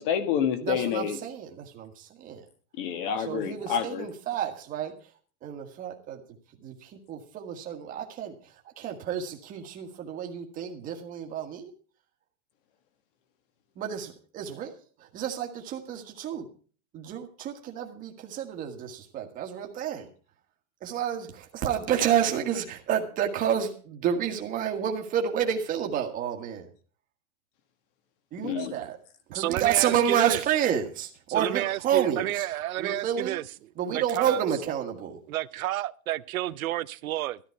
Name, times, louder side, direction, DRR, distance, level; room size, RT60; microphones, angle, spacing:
voice 1, 0.0-1.2 2.8-4.1 28.4-28.7, left 8 dB, 40° left, 1.7 m, -28 dB
voice 2, 0.6-2.4 3.2-4.9 5.4-6.2 6.6-11.7 13.7-14.7 15.0-16.5 16.9-20.1 20.8-26.7 28.3-29.0 29.3-32.5 32.8-33.4 33.8-35.2, right 9 dB, 20° right, 1.6 m, -30 dB
voice 3, 29.3-30.4 31.3-33.4 33.9-34.4 35.3-37.4, right 15 dB, 75° right, 0.9 m, -30 dB
13.5 x 13.0 x 4.6 m
supercardioid pair, 170°, 42 cm